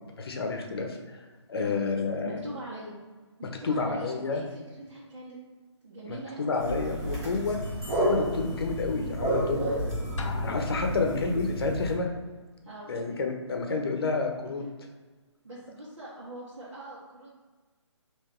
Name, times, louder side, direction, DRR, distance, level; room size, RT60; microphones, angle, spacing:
voice 1, 0.2-2.4 3.6-4.4 6.1-7.6 7.9-9.6 10.4-12.1 12.9-14.7, left 4 dB, 55° left, 3 dB, 0.7 m, -30 dB
voice 2, 2.2-2.9 3.4-5.4 5.8-6.6 9.6-9.9 10.9-11.0 12.6-12.9 15.4-17.3, right 1 dB, 75° right, -8 dB, 1.4 m, -42 dB
sound 1, 6.6-11.9, equal, 15° right, 0.7 m, -31 dB
Drum, 10.2-11.4, left 5 dB, 85° left, 0.6 m, -36 dB
3.8 x 2.9 x 4.3 m, 1.3 s
hypercardioid pair, 165°, 15 cm